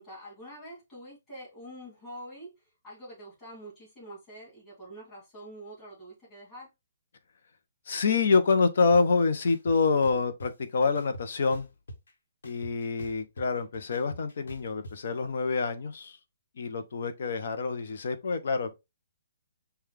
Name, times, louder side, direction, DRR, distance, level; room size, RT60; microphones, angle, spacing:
voice 1, 0.0-2.5 2.8-6.7, right 1 dB, 15° left, 2.4 m, -46 dB
voice 2, 7.9-11.7 12.4-16.2 16.6-18.7, left 4 dB, 55° left, 0.7 m, -26 dB
sound 1, 8.9-9.0 9.5-10.5 10.9-12.1 12.4-14.9, equal, 85° left, 1.1 m, -44 dB
5.4 x 2.3 x 3.3 m
hypercardioid pair, 170°, 0 cm